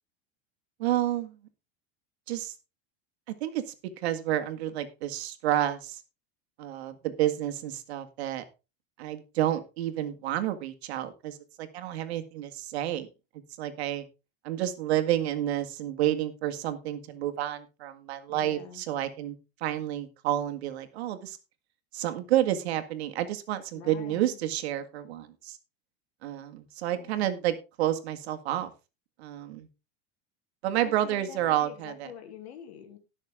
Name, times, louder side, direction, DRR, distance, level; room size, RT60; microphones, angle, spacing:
voice 1, 0.8-1.4 2.3-2.5 3.4-6.0 6.6-8.4 9.0-13.1 13.6-14.0 14.4-19.4 19.6-21.4 21.9-25.6 26.2-28.7 29.2-29.7 30.6-32.1, right 12 dB, 85° right, 7 dB, 1.9 m, -30 dB
voice 2, 18.3-18.9 23.7-24.4 26.9-27.3 30.8-33.0, left 8 dB, 90° left, 6 dB, 2.9 m, -46 dB
18.0 x 6.5 x 3.6 m, 0.29 s
supercardioid pair, 130°, 31 cm